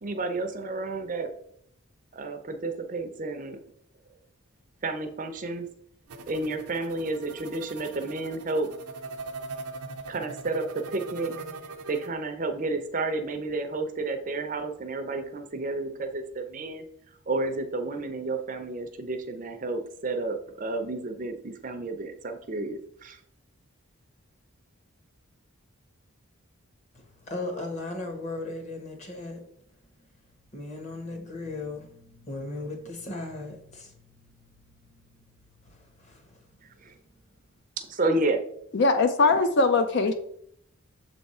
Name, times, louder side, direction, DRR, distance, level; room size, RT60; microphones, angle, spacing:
voice 1, 0.0-1.3 2.1-3.6 4.8-5.7 6.3-8.7 10.1-11.4 11.9-16.9 17.3-23.2 36.8-36.9 37.8-38.4, right 2 dB, 35° right, 0.5 m, -31 dB
sound 1, 6.1-12.1, right 3 dB, 90° right, 0.6 m, -41 dB
voice 2, 26.9-29.4 30.0-30.1 30.5-37.3, left 2 dB, 30° left, 1.0 m, -38 dB
voice 3, 38.7-40.1, left 3 dB, 50° left, 0.4 m, -21 dB
7.0 x 3.5 x 4.2 m
head